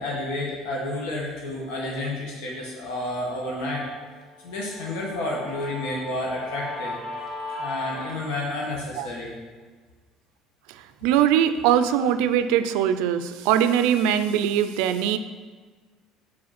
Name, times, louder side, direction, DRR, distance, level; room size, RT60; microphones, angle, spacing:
voice 1, 0.0-3.9 4.4-7.0 7.6-9.3, left 1 dB, 85° left, -3 dB, 1.4 m, -30 dB
Guitar, 2.6-8.2, left 2 dB, 5° left, 1.9 m, -37 dB
voice 2, 10.7-15.2, right 9 dB, 80° right, 11 dB, 0.4 m, -22 dB
5.0 x 4.1 x 5.8 m, 1.5 s
cardioid pair, 160°, 0 cm